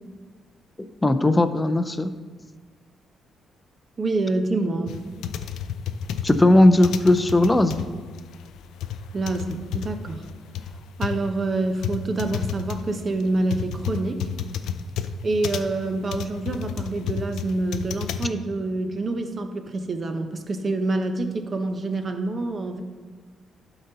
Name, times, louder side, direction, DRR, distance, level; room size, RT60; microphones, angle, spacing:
voice 1, 1.0-2.1 6.2-7.8, left 1 dB, 15° left, 10 dB, 0.5 m, -17 dB
voice 2, 4.0-5.0 9.1-10.2 11.0-14.3 15.2-22.8, right 2 dB, 35° right, 7 dB, 0.8 m, -27 dB
sound 1, 4.9-18.3, left 8 dB, 85° left, 0.4 m, -31 dB
12.0 x 4.0 x 4.0 m, 1.5 s
cardioid pair, 90°, 0 cm